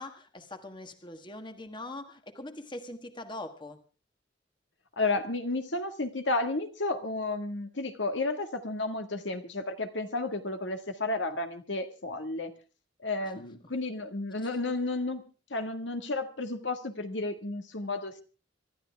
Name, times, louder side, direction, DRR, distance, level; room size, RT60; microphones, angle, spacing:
voice 1, 0.0-3.8 13.2-13.4 14.4-14.5, left 2 dB, 25° left, 7 dB, 1.5 m, -42 dB
voice 2, 5.0-12.5 13.0-15.2 15.5-18.2, left 2 dB, 75° left, 7 dB, 1.8 m, -32 dB
25.5 x 12.5 x 3.5 m, 0.34 s
head